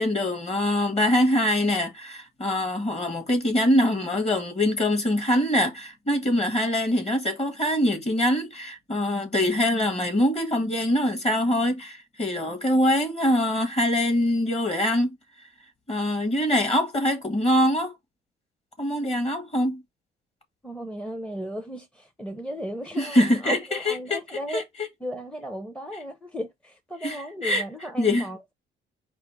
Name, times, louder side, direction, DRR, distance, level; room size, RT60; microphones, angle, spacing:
voice 1, 0.0-15.1 15.9-17.9 18.8-19.8 23.0-24.2 24.5-24.6 27.0-27.6 28.0-28.2, left 1 dB, 30° left, 1.6 m, -23 dB
voice 2, 20.6-24.6 25.0-28.5, equal, 5° left, 0.7 m, -36 dB
4.9 x 2.1 x 4.7 m
cardioid pair, 90°, 20 cm